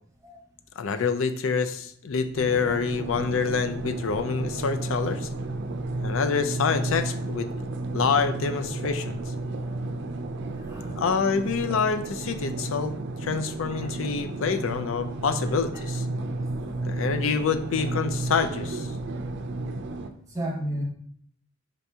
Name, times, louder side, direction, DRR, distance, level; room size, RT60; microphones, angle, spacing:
voice 1, 0.8-5.3 6.0-7.5 7.9-9.2 11.0-13.0 13.2-16.0 16.9-18.9, left 5 dB, 75° left, 9 dB, 0.4 m, -26 dB
sound 1, 2.3-20.1, right 2 dB, 55° right, 0.4 m, -32 dB
voice 2, 4.8-5.2 10.6-11.0 13.7-13.9 20.3-20.8, right 1 dB, 15° right, -2 dB, 1.0 m, -34 dB
5.1 x 2.8 x 3.4 m, 0.63 s
head